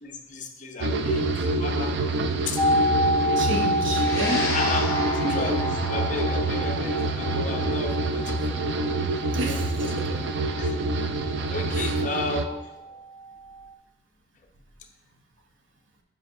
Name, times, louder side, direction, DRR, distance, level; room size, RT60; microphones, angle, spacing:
voice 1, 0.0-2.0 2.5-2.6 4.5-4.9 5.2-8.7 9.5-10.0 10.6-10.8 11.5-12.7, left 3 dB, 40° left, 3 dB, 0.6 m, -34 dB
sound 1, 0.8-12.5, right 2 dB, 60° right, 0.4 m, -26 dB
sound 2, 2.6-12.3 12.6-12.7, left 1 dB, ahead, 0.4 m, -29 dB
voice 2, 3.4-4.6 5.0-5.5 9.3-10.2 11.7-11.9, right 1 dB, 75° right, 3 dB, 0.9 m, -31 dB
sound 3, 3.9-12.5, left 2 dB, 20° left, 1.2 m, -35 dB
7.6 x 5.0 x 2.7 m, 0.91 s
head